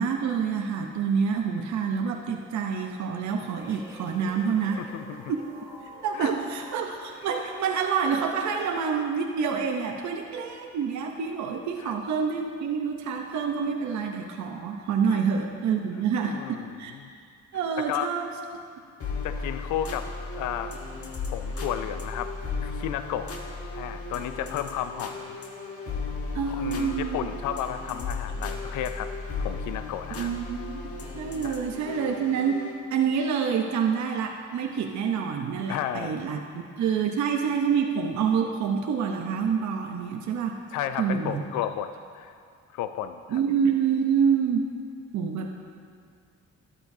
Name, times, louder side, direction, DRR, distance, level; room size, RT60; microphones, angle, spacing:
voice 1, 0.0-4.8 5.3-5.4 6.0-16.9 17.5-18.3 26.3-27.2 30.2-30.8 31.1-40.6 41.0-41.4 43.3-44.7 45.1-45.5, right 6 dB, 70° right, 2 dB, 0.8 m, -27 dB
sound 1, 3.6-8.7, right 1 dB, 10° right, 1.9 m, -47 dB
voice 2, 4.8-5.3 6.1-6.3 11.8-11.9 15.1-15.2 16.2-17.1 17.9-18.1 19.2-20.1 20.3-20.7 21.3-22.3 22.6-23.3 23.7-25.3 26.5-29.1 29.4-30.3 31.4-31.6 35.7-36.2 40.7-42.3 42.7-43.4, left 10 dB, 80° left, 10 dB, 0.4 m, -33 dB
sound 2, 19.0-32.8, left 3 dB, 50° left, 1.3 m, -35 dB
13.0 x 10.5 x 2.7 m, 2.2 s
cardioid pair, 90°, 30 cm